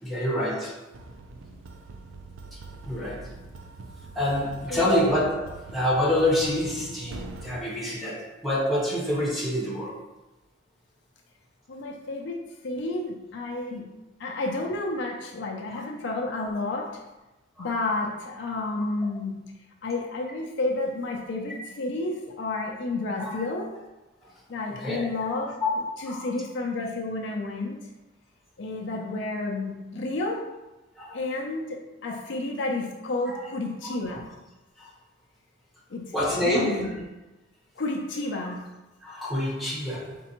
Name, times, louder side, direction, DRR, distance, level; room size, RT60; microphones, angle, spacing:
voice 1, 0.0-0.8 2.5-3.3 4.1-10.0 15.7-15.8 17.6-17.7 23.2-23.4 24.8-25.0 26.0-26.3 31.0-31.2 33.3-33.4 33.8-34.0 34.8-34.9 36.1-36.9 38.4-38.5 39.0-40.1, left 1 dB, ahead, -6 dB, 1.1 m, -27 dB
sound 1, 0.9-7.6, right 3 dB, 85° right, 0.5 m, -43 dB
voice 2, 11.7-13.9 14.2-17.0 17.6-19.3 19.8-23.7 24.5-25.6 26.0-27.8 28.6-30.4 31.1-34.3 35.9-37.0 37.8-38.6, left 2 dB, 60° left, 1 dB, 0.5 m, -31 dB
4.1 x 3.7 x 2.9 m, 1.0 s
head